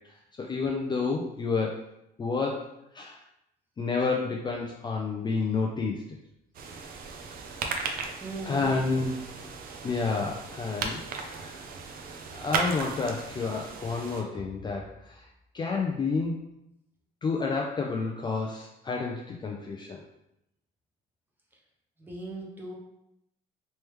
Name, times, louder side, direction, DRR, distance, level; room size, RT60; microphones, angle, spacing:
voice 1, 0.4-1.8 2.2-2.7 2.9-3.2 3.8-6.0 8.5-9.1 9.8-11.0 11.2-11.7 12.3-15.3 15.5-16.4 17.2-20.0, left 4 dB, 25° left, 0 dB, 0.4 m, -30 dB
sound 1, 6.5-14.2, right 5 dB, 60° right, 0.5 m, -36 dB
voice 2, 8.2-8.7 22.0-22.7, right 2 dB, 10° right, -2 dB, 0.9 m, -39 dB
3.3 x 3.1 x 3.1 m, 0.82 s
cardioid pair, 110°, 17 cm